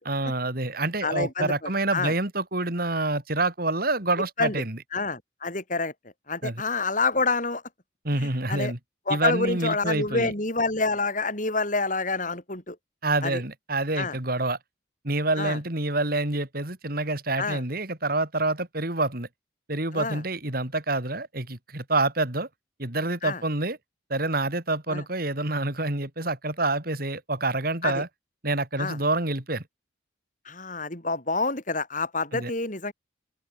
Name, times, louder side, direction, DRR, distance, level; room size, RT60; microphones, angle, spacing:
voice 1, 0.0-4.8 6.4-6.6 8.0-8.8 9.1-10.3 13.0-14.6 15.0-19.3 19.7-22.5 22.8-23.8 24.1-28.1 28.4-29.6 32.3-32.5, right 2 dB, 50° right, 3.4 m, -27 dB
voice 2, 1.0-2.1 4.4-4.6 4.9-5.9 6.3-7.6 8.2-8.7 9.1-12.8 13.2-13.4 14.0-14.2 15.4-15.6 17.4-17.6 19.9-20.2 23.2-23.4 24.9-25.0 27.8-28.0 28.8-29.0 30.5-32.9, left 3 dB, 45° left, 7.0 m, -28 dB
open air
head